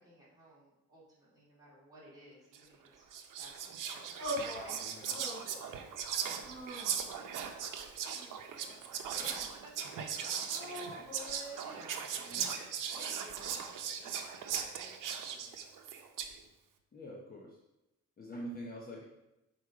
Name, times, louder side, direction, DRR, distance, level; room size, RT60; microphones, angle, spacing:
voice 1, 0.0-3.0 3.4-5.6 6.3-7.8 8.6-11.4 11.7-12.2 12.9-15.6, right 1 dB, 10° right, -8 dB, 2.6 m, -57 dB
Whispering, 2.5-2.7 3.1-16.4, right 7 dB, 85° right, 0.7 m, -39 dB
sound 1, 4.2-4.8 5.1-5.8 6.4-7.3 8.1-9.1 10.5-11.8, equal, 45° right, 2.4 m, -43 dB
voice 2, 4.8-5.2 12.3-12.5 16.9-17.6 18.2-19.0, equal, 30° left, -3 dB, 0.9 m, -45 dB
6.4 x 4.4 x 4.9 m, 0.93 s
cardioid pair, 155°, 31 cm